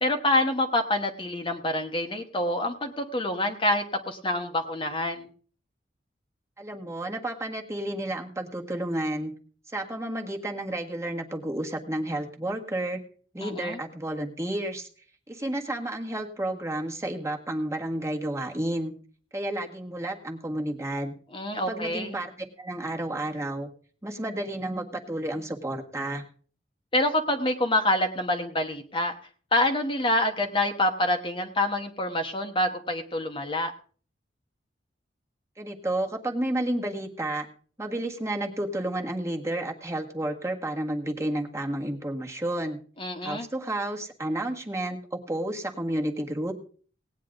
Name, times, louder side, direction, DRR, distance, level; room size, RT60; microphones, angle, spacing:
voice 1, 0.0-5.3 13.4-13.8 21.3-22.2 26.9-29.2 29.5-33.7 43.0-43.5, left 1 dB, 30° left, 5 dB, 1.1 m, -26 dB
voice 2, 6.6-9.3 9.7-13.0 13.3-14.9 15.3-18.9 19.3-21.1 21.5-22.3 22.6-23.7 24.0-26.2 35.6-37.5 37.8-42.8 43.2-46.5, right 1 dB, 15° right, 2 dB, 1.5 m, -31 dB
18.0 x 9.3 x 3.9 m, 0.43 s
head